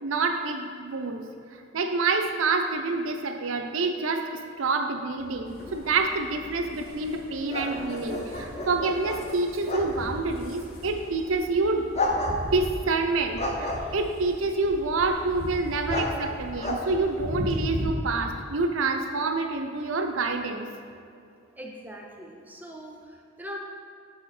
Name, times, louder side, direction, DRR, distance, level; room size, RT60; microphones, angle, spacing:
voice 1, 0.0-1.2 1.7-11.9 12.5-20.7, right 3 dB, 80° right, 5 dB, 0.6 m, -27 dB
sound 1, 5.2-17.7, left 1 dB, 30° left, 0.7 m, -35 dB
sound 2, 5.5-17.9, left 1 dB, 50° left, 1.2 m, -38 dB
voice 2, 21.6-23.6, equal, 10° right, 0 dB, 0.6 m, -41 dB
7.1 x 4.9 x 4.2 m, 2.4 s
head